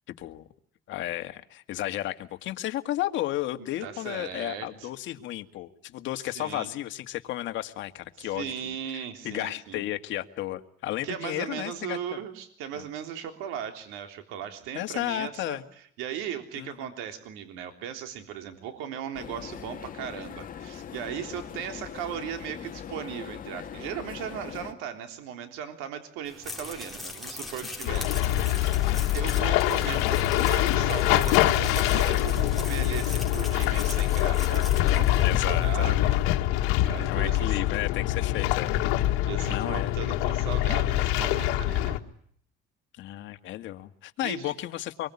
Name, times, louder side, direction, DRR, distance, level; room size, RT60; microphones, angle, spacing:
voice 1, 0.1-0.4 0.9-12.2 12.7-12.8 14.7-15.6 16.5-16.9 28.9-29.2 35.2-36.0 36.9-38.8 39.5-39.9 43.0-45.1, left 14 dB, 70° left, 8 dB, 2.0 m, -33 dB
voice 2, 3.6-4.9 6.4-6.7 8.2-9.8 11.0-15.6 16.0-28.2 28.6-28.7 29.1-36.2 36.8-37.6 39.2-42.0 44.2-44.5, right 9 dB, 90° right, 7 dB, 3.6 m, -37 dB
sound 1, 19.1-24.7, left 8 dB, 45° left, 2.3 m, -41 dB
sound 2, 26.3-35.8, left 2 dB, ahead, 4.9 m, -41 dB
sound 3, 27.9-42.0, left 14 dB, 90° left, 1.8 m, -24 dB
25.5 x 23.0 x 9.9 m, 0.63 s
cardioid pair, 110°, 20 cm